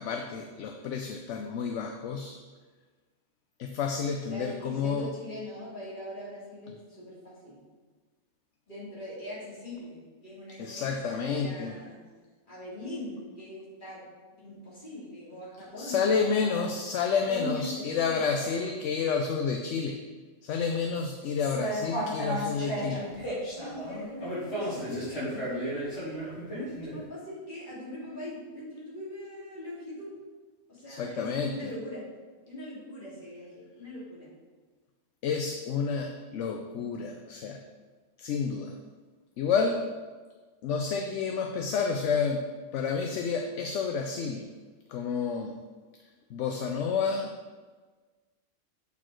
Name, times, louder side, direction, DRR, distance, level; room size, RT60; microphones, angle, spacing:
voice 1, 0.0-2.4 3.6-5.1 10.6-11.7 15.8-20.0 20.4-23.0 30.9-31.7 35.2-37.6 38.2-38.8 39.4-39.8 40.6-42.5 42.7-44.5 44.9-45.6 46.3-47.3, left 5 dB, 70° left, 4 dB, 0.9 m, -30 dB
voice 2, 4.3-7.6 8.7-12.0 12.5-14.0 14.4-16.6 17.2-18.8 22.4-23.0 23.5-25.9 26.5-30.1 30.7-32.0 32.5-34.3, left 1 dB, 40° left, -8 dB, 2.8 m, -41 dB
sound 1, 21.4-26.9, equal, 55° left, 2.9 m, -34 dB
8.4 x 4.4 x 4.4 m, 1.4 s
omnidirectional pair, 1.3 m